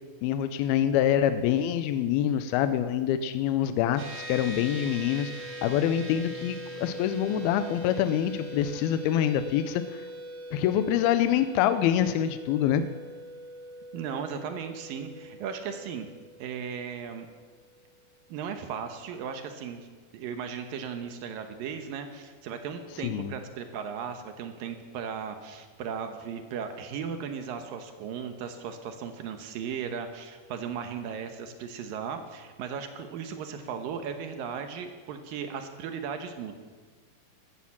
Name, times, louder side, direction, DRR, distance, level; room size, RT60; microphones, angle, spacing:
voice 1, 0.2-10.0 10.5-12.8 23.0-23.3, left 10 dB, 85° left, 10 dB, 2.2 m, -26 dB
sound 1, 4.0-17.6, right 1 dB, 40° right, 3.4 m, -42 dB
voice 2, 13.9-16.1 16.4-17.3 18.3-19.9 20.1-36.6, right 7 dB, 70° right, 7 dB, 2.4 m, -36 dB
13.0 x 13.0 x 7.3 m, 1.5 s
omnidirectional pair, 5.0 m